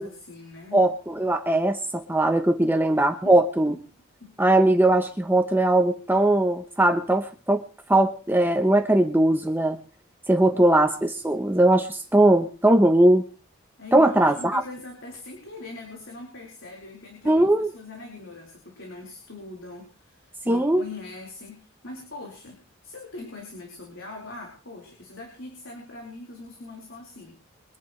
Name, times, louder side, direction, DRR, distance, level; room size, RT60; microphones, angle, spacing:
voice 1, 0.0-0.8 2.7-3.3 3.7-3.8 4.2-4.3 10.5-10.6 13.8-27.4, left 3 dB, 65° left, -2 dB, 4.4 m, -42 dB
voice 2, 0.7-3.7 4.4-7.6 7.9-9.8 10.3-13.2 13.9-14.6 17.2-17.7 20.5-20.8, right 1 dB, 10° right, 6 dB, 0.9 m, -20 dB
24.0 x 11.0 x 3.2 m, 0.38 s
head